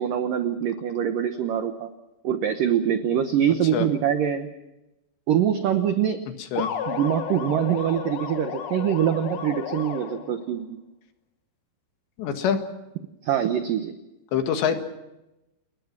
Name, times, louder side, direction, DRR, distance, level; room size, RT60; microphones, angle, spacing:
voice 1, 0.0-1.9 2.2-4.5 5.3-6.2 6.9-10.8 13.2-14.0, right 9 dB, 75° right, 8 dB, 2.0 m, -24 dB
sound 1, 6.6-10.4, left 8 dB, 90° left, 1.5 m, -33 dB
voice 2, 12.2-12.6 14.3-14.8, left 8 dB, 70° left, 6 dB, 3.8 m, -24 dB
29.0 x 21.5 x 6.0 m, 0.93 s
omnidirectional pair, 5.6 m